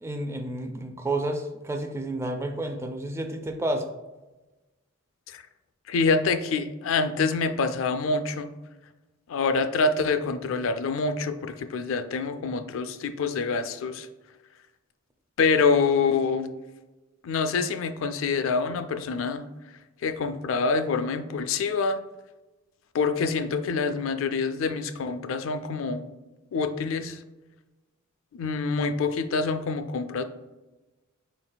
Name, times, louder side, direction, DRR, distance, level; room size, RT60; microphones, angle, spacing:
voice 1, 0.0-3.9, right 1 dB, 15° right, 6 dB, 0.4 m, -30 dB
voice 2, 5.9-8.5 9.3-14.1 15.4-16.5 17.2-19.4 20.0-22.0 22.9-26.0 26.5-27.2 28.3-30.2, left 4 dB, 65° left, 9 dB, 0.4 m, -26 dB
4.6 x 3.9 x 2.2 m, 1.1 s
head